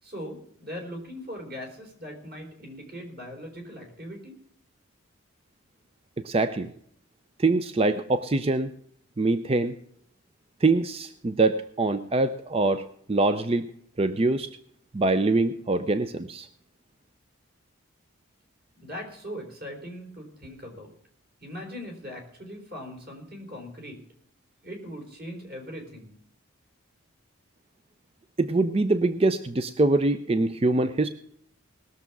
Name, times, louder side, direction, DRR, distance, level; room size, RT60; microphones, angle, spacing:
voice 1, 0.0-4.3 18.8-20.9 21.4-24.0 24.6-26.1, equal, 45° right, 1 dB, 4.0 m, -40 dB
voice 2, 6.2-6.7 7.4-8.7 9.2-9.8 10.6-13.7 14.0-14.5 14.9-16.5 28.4-31.1, right 2 dB, 30° right, 11 dB, 0.5 m, -24 dB
19.5 x 7.0 x 6.0 m, 0.66 s
head